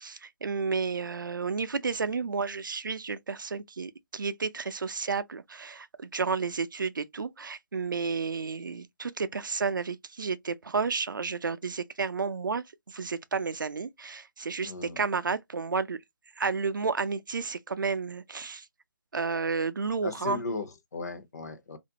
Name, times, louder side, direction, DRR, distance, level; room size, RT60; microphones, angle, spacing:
voice 1, 0.0-16.0 16.4-18.7 19.1-20.4, right 5 dB, 75° right, 0.4 m, -31 dB
voice 2, 14.6-15.0 20.0-21.8, left 4 dB, 55° left, 0.7 m, -36 dB
2.4 x 2.1 x 2.7 m
figure-of-eight pair, 145°, 11 cm